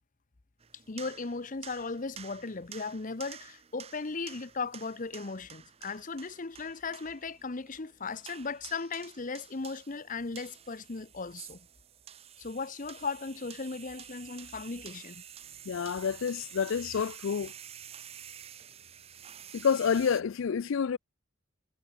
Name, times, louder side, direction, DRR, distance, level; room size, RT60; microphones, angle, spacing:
sound 1, 0.6-20.2, right 9 dB, 30° right, 0.6 m, -50 dB
voice 1, 0.9-11.7 12.4-15.2, left 4 dB, 40° left, 0.8 m, -37 dB
voice 2, 15.7-17.5 19.5-21.0, left 6 dB, 65° left, 0.4 m, -28 dB
head